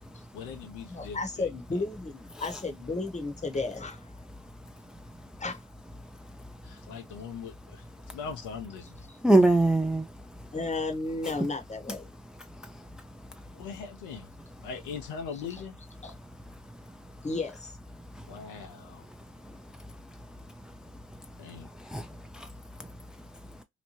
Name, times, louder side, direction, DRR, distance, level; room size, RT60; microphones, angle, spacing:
voice 1, 0.3-1.5 6.6-9.1 13.5-14.3 14.6-15.8 18.3-19.1 21.4-21.7, left 6 dB, 75° left, 0.8 m, -41 dB
voice 2, 0.9-4.1 5.4-5.6 10.5-12.1 16.0-16.1 17.2-17.8 19.4-19.6 22.3-22.4, left 3 dB, 20° left, 1.0 m, -33 dB
voice 3, 4.9-5.4 6.0-6.9 8.1-8.2 9.2-10.5 12.4-13.5 16.5-17.1 18.0-18.5 18.8-23.6, right 2 dB, ahead, 0.5 m, -30 dB
2.9 x 2.1 x 3.0 m
hypercardioid pair, 45°, 32 cm